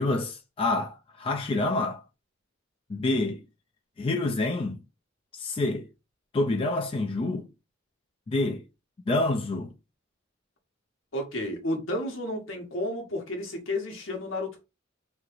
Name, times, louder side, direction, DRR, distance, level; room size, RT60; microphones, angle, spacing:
voice 1, 0.0-2.0 2.9-3.4 4.0-4.8 5.3-5.9 6.3-7.5 8.3-8.6 9.1-9.7, left 2 dB, 30° left, 0.3 m, -27 dB
voice 2, 11.1-14.6, left 1 dB, 70° left, 1.1 m, -32 dB
3.0 x 2.8 x 2.4 m
head